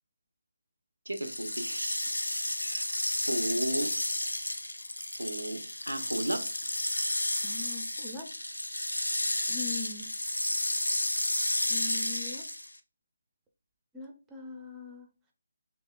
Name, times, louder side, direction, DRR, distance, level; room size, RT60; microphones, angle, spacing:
sound 1, 1.1-12.8, left 1 dB, 85° left, 0.3 m, -32 dB
voice 1, 1.1-2.0 2.6-2.8 3.3-3.9 5.2-6.5, right 1 dB, 85° right, 0.4 m, -34 dB
voice 2, 7.4-8.3 9.5-10.1 11.7-12.4 13.9-15.1, left 5 dB, 10° right, 0.4 m, -41 dB
2.8 x 2.0 x 2.2 m
figure-of-eight pair, 150°, 0 cm